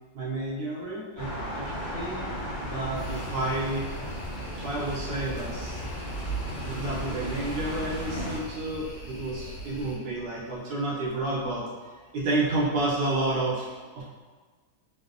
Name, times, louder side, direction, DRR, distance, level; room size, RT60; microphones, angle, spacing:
voice 1, 0.1-2.2 2.7-3.8 4.5-5.8 6.6-11.6 12.1-14.0, right 2 dB, 75° right, -6 dB, 1.3 m, -30 dB
sound 1, 1.2-8.4, equal, 45° left, 0.6 m, -35 dB
sound 2, 3.0-10.0, right 1 dB, 70° left, 1.0 m, -42 dB
3.4 x 2.0 x 2.4 m, 1.4 s
omnidirectional pair, 2.2 m